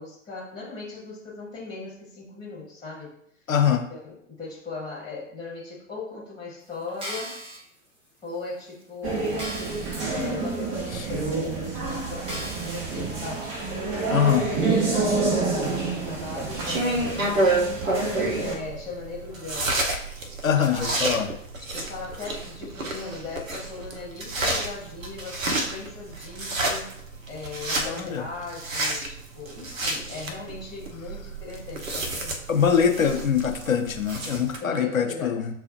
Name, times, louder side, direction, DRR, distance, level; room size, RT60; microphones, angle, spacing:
voice 1, 0.0-3.1 3.7-7.4 8.2-9.5 10.0-13.9 14.2-17.3 18.4-19.8 20.5-27.0 27.3-32.4 32.9-33.1 34.6-35.5, left 4 dB, 10° left, -4 dB, 1.3 m, -38 dB
voice 2, 3.5-3.9 10.9-11.0 14.1-14.5 20.4-21.3 27.9-28.2 32.5-35.5, left 7 dB, 85° left, 4 dB, 0.7 m, -23 dB
sound 1, 6.9-7.6 8.3-8.4 8.8-8.9 9.4-10.1 10.5-10.6 11.3-11.4 12.3-12.9 13.5-13.6, equal, 15° right, 1.2 m, -37 dB
sound 2, 9.0-18.6, right 3 dB, 35° right, 1.0 m, -28 dB
sound 3, 16.4-34.6, right 2 dB, 75° right, 0.8 m, -30 dB
7.2 x 2.4 x 2.6 m, 0.69 s
figure-of-eight pair, 100°, 40 cm